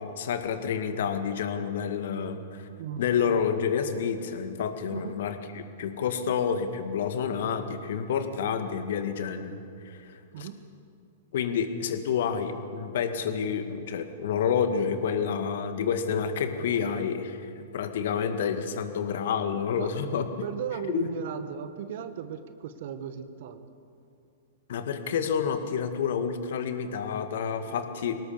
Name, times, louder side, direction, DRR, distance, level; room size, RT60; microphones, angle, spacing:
voice 1, 0.0-2.7 3.0-9.6 9.8-10.5 11.3-20.3 20.9-21.1 24.7-28.1, left 7 dB, 65° left, 8 dB, 2.0 m, -29 dB
voice 2, 4.9-5.2 10.3-10.6 19.8-19.9 20.4-23.7, right 9 dB, 60° right, 10 dB, 1.5 m, -36 dB
24.5 x 18.0 x 7.0 m, 2.5 s
hypercardioid pair, 105°, 0 cm